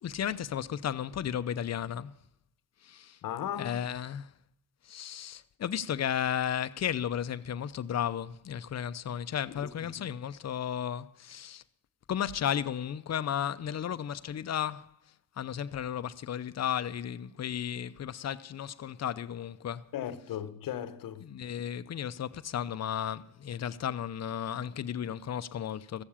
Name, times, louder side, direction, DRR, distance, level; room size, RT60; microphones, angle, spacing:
voice 1, 0.0-2.1 2.8-3.2 3.6-4.3 4.8-11.6 12.1-19.9 21.2-26.0, left 9 dB, 50° left, 0.7 m, -34 dB
voice 2, 3.2-3.9 9.5-10.0 19.9-21.3, left 10 dB, 75° left, 1.0 m, -37 dB
15.0 x 7.2 x 8.6 m
cardioid pair, 65°, 34 cm